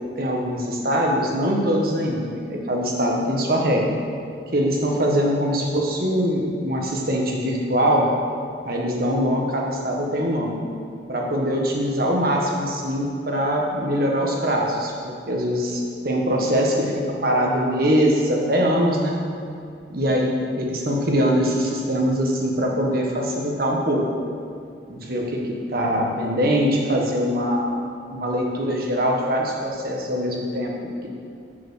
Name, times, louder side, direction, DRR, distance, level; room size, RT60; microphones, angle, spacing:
voice 1, 0.0-3.9 4.5-8.1 8.6-10.6 11.1-19.2 19.9-24.0 24.9-27.7 28.1-30.7, equal, 55° right, -1 dB, 1.4 m, -22 dB
6.8 x 6.2 x 6.3 m, 2.4 s
head